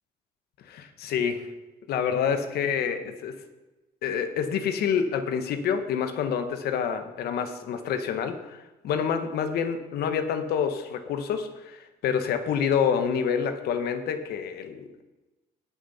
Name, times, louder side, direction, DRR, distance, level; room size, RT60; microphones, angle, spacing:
voice 1, 0.7-1.5 1.9-3.4 4.0-15.0, left 7 dB, 70° left, 8 dB, 1.3 m, -27 dB
18.5 x 6.6 x 4.3 m, 1.1 s
cardioid pair, 110°, 17 cm